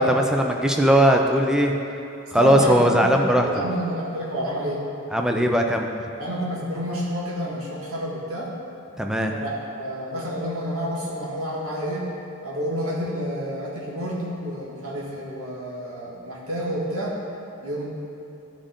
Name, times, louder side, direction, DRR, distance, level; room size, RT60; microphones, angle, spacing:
voice 1, 0.0-1.7 2.3-3.6 5.1-5.9 9.0-9.4, equal, 5° right, 2 dB, 0.5 m, -19 dB
voice 2, 2.4-4.8 6.2-8.5 9.3-12.0 12.4-17.2 17.6-17.9, equal, 85° right, -5 dB, 1.9 m, -29 dB
12.5 x 5.0 x 3.7 m, 2.9 s
head